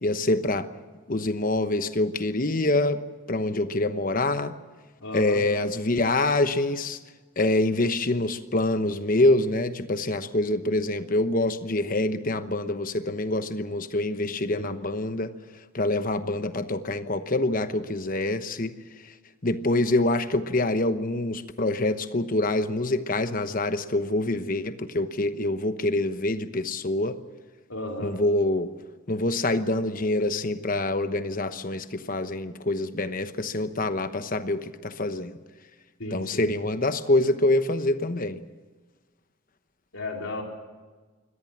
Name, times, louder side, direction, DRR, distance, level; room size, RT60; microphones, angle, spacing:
voice 1, 0.0-0.7 1.1-3.0 3.3-4.5 5.1-7.0 7.4-15.3 15.7-18.7 19.4-27.2 28.0-28.7 29.1-35.4 36.1-38.4, left 2 dB, 40° left, 10 dB, 1.0 m, -25 dB
voice 2, 5.0-5.4 14.5-14.7 27.7-28.1 36.0-36.5 39.9-40.4, left 2 dB, 75° left, 1 dB, 4.0 m, -34 dB
24.0 x 18.5 x 7.3 m, 1.3 s
head